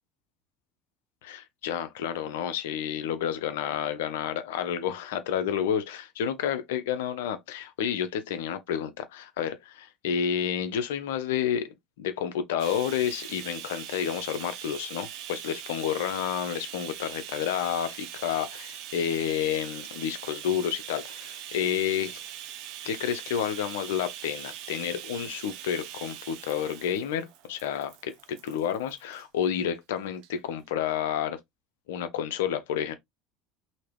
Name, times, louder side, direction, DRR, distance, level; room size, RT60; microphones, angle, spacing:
voice 1, 1.2-22.2 22.8-31.4 31.9-32.9, left 9 dB, 75° left, 0.6 m, -30 dB
Bathtub (filling or washing), 12.6-29.2 30.2-30.3 30.7-30.8, right 11 dB, 60° right, 0.5 m, -42 dB
2.9 x 2.7 x 3.2 m
hypercardioid pair, 70°, 0 cm